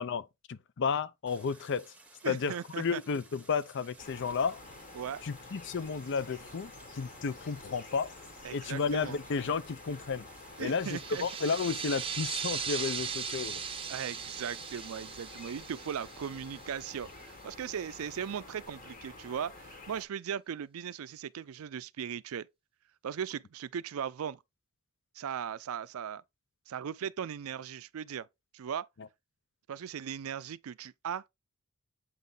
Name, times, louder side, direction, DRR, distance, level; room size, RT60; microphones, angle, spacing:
voice 1, 0.0-1.9 2.2-4.6 5.2-8.1 8.5-10.3 10.6-13.6, left 5 dB, 55° left, 0.5 m, -32 dB
Stream, 1.3-12.1, right 3 dB, 5° right, 1.0 m, -58 dB
voice 2, 2.2-3.0 4.9-5.2 8.4-9.2 10.6-11.2 13.9-22.5 23.0-24.4 25.1-26.2 26.7-28.3 28.5-28.9 29.7-31.3, right 8 dB, 70° right, 0.4 m, -38 dB
sound 1, 4.0-20.0, left 3 dB, 40° left, 1.4 m, -50 dB
sound 2, 10.7-17.0, right 7 dB, 25° right, 0.7 m, -38 dB
8.1 x 3.8 x 3.8 m
head